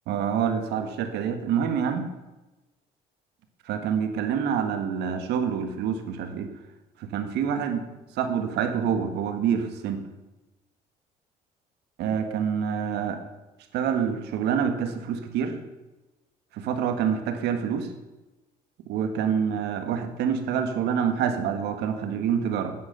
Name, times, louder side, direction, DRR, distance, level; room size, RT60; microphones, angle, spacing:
voice 1, 0.1-2.1 3.7-6.5 7.0-7.8 8.2-10.0 12.0-13.2 13.7-15.6 16.5-17.9 18.9-22.7, right 7 dB, 80° right, 7 dB, 1.7 m, -27 dB
9.5 x 9.3 x 7.9 m, 1.1 s
cardioid pair, 110°, 17 cm